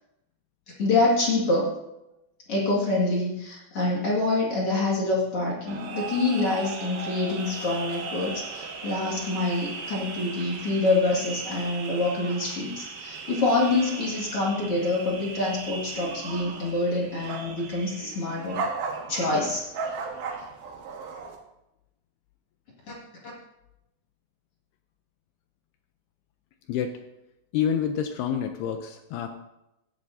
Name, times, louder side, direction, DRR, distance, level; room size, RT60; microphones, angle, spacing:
voice 1, 0.8-1.6 2.5-18.6 19.1-19.6, left 2 dB, 40° left, -4 dB, 2.3 m, -26 dB
sound 1, 5.7-21.4, right 4 dB, 65° right, 2.5 m, -37 dB
voice 2, 26.7-27.0 27.5-29.4, left 8 dB, 80° left, 6 dB, 2.4 m, -28 dB
17.0 x 11.0 x 2.7 m, 0.91 s
omnidirectional pair, 5.2 m